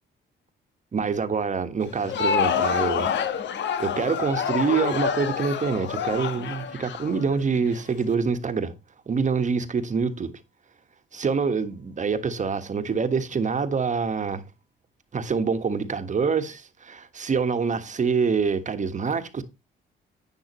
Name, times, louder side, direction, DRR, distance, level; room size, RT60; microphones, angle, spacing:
voice 1, 0.9-3.1 3.8-8.7 9.1-10.3 11.1-14.4 15.1-19.4, right 5 dB, 40° right, 1.5 m, -26 dB
Crowd, 1.9-7.8, left 7 dB, 65° left, 1.3 m, -27 dB
11.0 x 9.2 x 3.1 m
cardioid pair, 90°, 20 cm